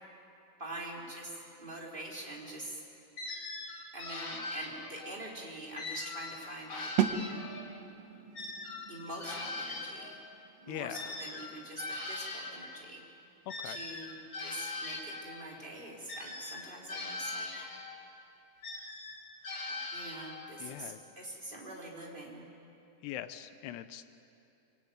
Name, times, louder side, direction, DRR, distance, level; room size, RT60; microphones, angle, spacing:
voice 1, 0.6-2.8 3.9-6.9 8.9-10.1 10.7-13.0 13.6-17.7 19.7-22.5, right 1 dB, 10° right, -2 dB, 3.9 m, -45 dB
sound 1, 3.2-5.2 5.8-7.8 8.3-12.7 13.5-15.5 16.1-18.1 18.6-20.6, left 2 dB, 35° left, 2.5 m, -41 dB
sound 2, 7.0-12.7, right 9 dB, 80° right, 1.5 m, -38 dB
voice 2, 10.7-11.0 13.5-13.8 20.6-21.0 23.0-24.2, left 12 dB, 80° left, 11 dB, 2.8 m, -42 dB
24.5 x 24.0 x 9.6 m, 2.7 s
omnidirectional pair, 4.8 m